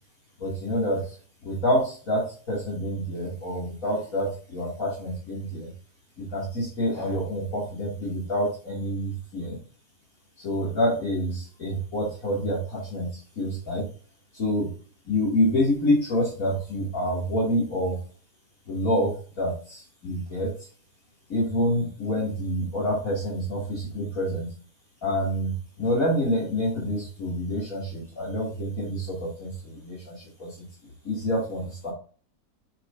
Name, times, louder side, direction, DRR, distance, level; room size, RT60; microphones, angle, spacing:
voice 1, 0.4-1.0 1.4-5.7 6.2-9.6 10.4-13.9 14.3-14.7 15.1-18.0 18.7-20.5 21.3-24.5 25.0-30.7 31.0-31.9, equal, 60° left, -5 dB, 2.9 m, -27 dB
6.5 x 6.4 x 2.7 m, 0.40 s
omnidirectional pair, 1.7 m